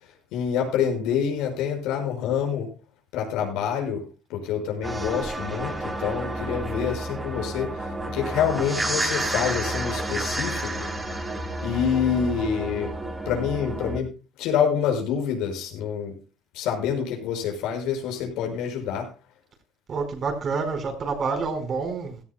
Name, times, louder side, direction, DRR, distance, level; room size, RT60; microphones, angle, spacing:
voice 1, 0.3-2.7 3.1-4.0 4.3-10.9 11.6-12.9 13.3-16.2 16.5-19.1, left 8 dB, 75° left, 5.7 m, -27 dB
sound 1, 4.8-14.0, right 1 dB, 15° right, 3.4 m, -30 dB
voice 2, 19.9-22.2, right 4 dB, 40° right, 4.5 m, -28 dB
16.5 x 14.5 x 2.2 m
supercardioid pair, 105°, 0 cm